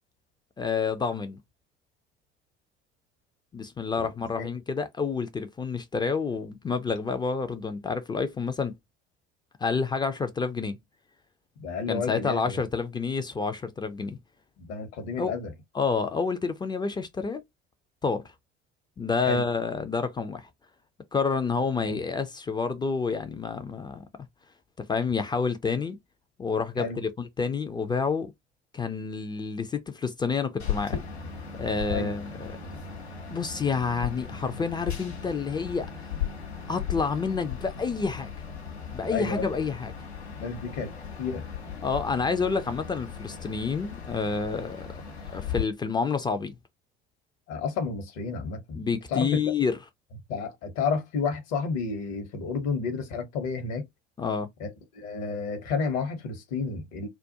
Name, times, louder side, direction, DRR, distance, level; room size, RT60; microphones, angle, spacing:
voice 1, 0.6-1.4 3.5-8.7 9.6-10.8 11.9-14.2 15.2-15.4 15.7-17.4 18.0-18.2 19.0-20.5 21.1-24.0 24.8-26.0 26.4-28.3 28.7-31.0 31.6-32.5 33.3-35.9 36.7-38.3 38.9-39.9 41.8-45.0 45.3-46.6 48.7-49.8 54.2-54.5, left 5 dB, 15° left, 0.4 m, -29 dB
voice 2, 11.6-12.6 14.6-15.5 19.2-19.4 21.9-22.0 26.8-27.0 31.9-32.1 39.1-39.4 40.4-40.9 41.2-41.4 47.5-48.8 49.1-49.5 50.3-53.8 54.6-57.1, left 5 dB, 55° left, 0.9 m, -31 dB
sound 1, 30.6-45.6, left 7 dB, 85° left, 0.7 m, -37 dB
2.3 x 2.1 x 2.7 m
figure-of-eight pair, 60°, 32 cm